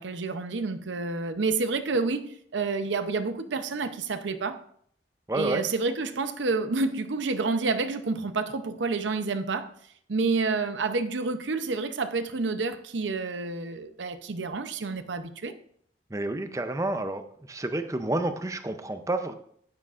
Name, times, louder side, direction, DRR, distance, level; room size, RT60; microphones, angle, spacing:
voice 1, 0.0-4.6 5.3-9.7 10.1-15.5, right 3 dB, 80° right, 0.7 m, -29 dB
voice 2, 5.3-5.7 16.1-17.2 17.5-19.3, right 2 dB, 15° right, 0.5 m, -29 dB
9.8 x 9.6 x 2.5 m
head